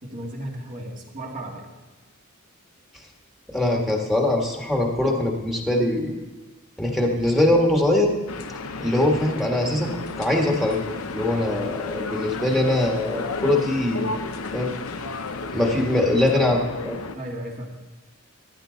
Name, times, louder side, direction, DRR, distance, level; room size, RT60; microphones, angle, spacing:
voice 1, 0.0-1.7 17.1-17.7, right 1 dB, 40° right, -1 dB, 2.4 m, -34 dB
voice 2, 3.5-6.1 6.8-8.1 8.8-9.9 10.2-14.1 14.5-14.7 15.5-17.0, left 1 dB, ahead, 0 dB, 1.7 m, -22 dB
sound 1, 8.3-17.2, left 3 dB, 90° left, 0.8 m, -33 dB
15.0 x 11.0 x 4.0 m, 1.2 s
head